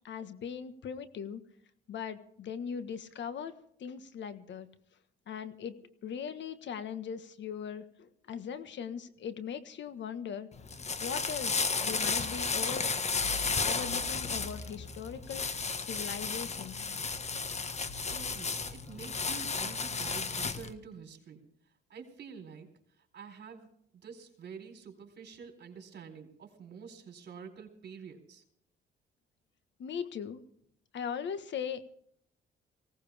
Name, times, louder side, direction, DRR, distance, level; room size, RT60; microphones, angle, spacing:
voice 1, 0.0-1.4 1.9-3.5 3.8-4.7 5.3-5.7 6.0-10.5 11.0-12.9 13.6-15.4 15.8-16.8 29.8-30.4 30.9-31.9, left 7 dB, 65° left, 11 dB, 1.5 m, -39 dB
sound 1, 10.5-20.7, left 4 dB, 35° left, 1.6 m, -33 dB
voice 2, 18.1-21.4 21.9-22.7 23.1-23.7 24.0-28.4, right 6 dB, 60° right, 4 dB, 4.1 m, -48 dB
20.0 x 17.5 x 3.5 m, 0.67 s
cardioid pair, 90°, 20 cm